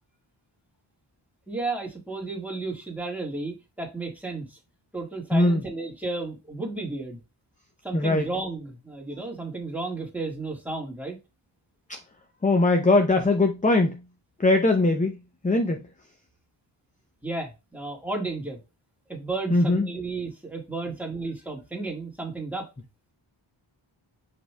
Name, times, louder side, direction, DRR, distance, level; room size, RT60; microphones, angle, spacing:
voice 1, 1.5-4.6 4.9-7.2 7.8-11.2 17.2-18.6 19.1-22.7, right 3 dB, 5° right, 1.7 m, -33 dB
voice 2, 5.3-5.6 7.9-8.3 11.9-12.0 12.4-14.0 14.4-15.2 15.4-15.8 19.5-19.9, left 2 dB, 15° left, 0.6 m, -21 dB
5.1 x 4.4 x 2.3 m
wide cardioid pair, 80°, 49 cm